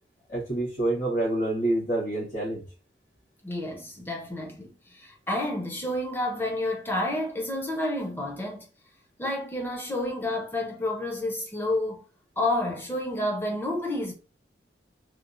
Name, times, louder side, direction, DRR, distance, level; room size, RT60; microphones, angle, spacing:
voice 1, 0.3-2.6, right 1 dB, 50° left, 1.0 m, -27 dB
voice 2, 3.4-8.7 9.2-12.0 12.4-14.1, left 1 dB, 10° left, 0.4 m, -30 dB
2.8 x 2.0 x 2.4 m
head